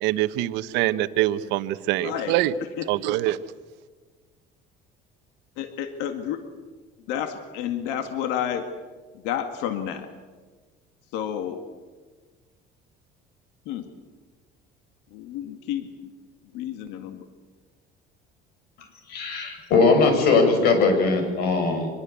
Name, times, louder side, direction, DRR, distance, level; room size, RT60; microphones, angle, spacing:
voice 1, 0.0-2.5 2.9-3.4, right 15 dB, 85° right, 13 dB, 1.1 m, -24 dB
voice 2, 2.0-2.9 5.6-6.4 7.1-8.7 9.2-10.1 11.1-11.6 13.7-13.8 15.1-15.9 16.5-17.2, left 9 dB, 90° left, 7 dB, 2.0 m, -30 dB
voice 3, 19.1-21.9, left 4 dB, 65° left, 5 dB, 6.9 m, -20 dB
25.0 x 22.0 x 8.5 m, 1.4 s
cardioid pair, 155°, 18 cm